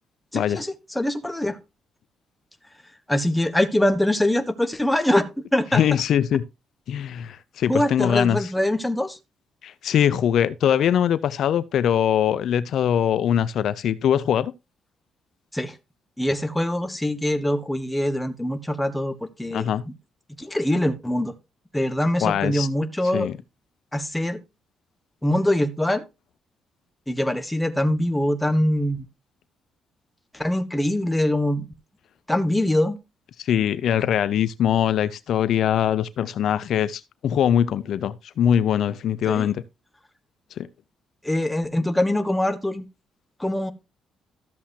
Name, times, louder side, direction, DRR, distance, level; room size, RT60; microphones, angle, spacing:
voice 1, 0.3-1.6 3.1-5.3 5.5-5.8 7.7-9.2 15.5-15.7 16.2-19.7 20.4-21.3 21.7-23.3 23.9-24.4 25.2-26.0 27.1-29.1 30.3-31.7 32.3-33.0 39.3-39.5 41.2-42.9 43.4-43.7, left 1 dB, 10° left, 1.3 m, -23 dB
voice 2, 5.7-6.4 6.9-8.4 9.6-14.5 19.5-19.8 22.2-22.7 23.1-23.4 33.4-39.6 40.6-40.7, left 9 dB, 70° left, 0.5 m, -22 dB
13.5 x 7.3 x 2.8 m
cardioid pair, 90°, 0 cm